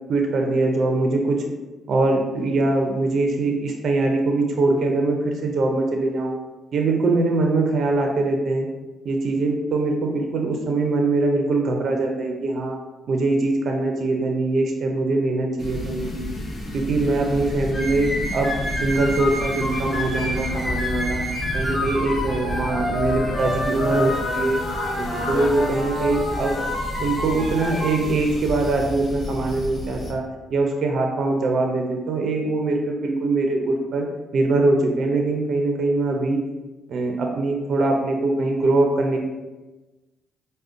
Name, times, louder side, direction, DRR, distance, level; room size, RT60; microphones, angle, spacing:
voice 1, 0.1-1.5 1.9-6.4 6.7-8.7 9.0-12.8 13.1-16.1 16.7-21.2 21.5-24.6 25.0-26.6 27.0-30.2 30.5-34.1 34.3-36.4 36.9-39.2, right 2 dB, 60° right, 2 dB, 0.4 m, -22 dB
sound 1, 15.6-30.1, equal, 40° left, 0.9 m, -32 dB
Fowl, 16.3-25.7, left 3 dB, 80° left, 0.4 m, -37 dB
sound 2, 17.7-28.0, left 1 dB, 15° left, 0.8 m, -28 dB
4.8 x 2.1 x 2.5 m, 1.1 s
cardioid pair, 90°, 0 cm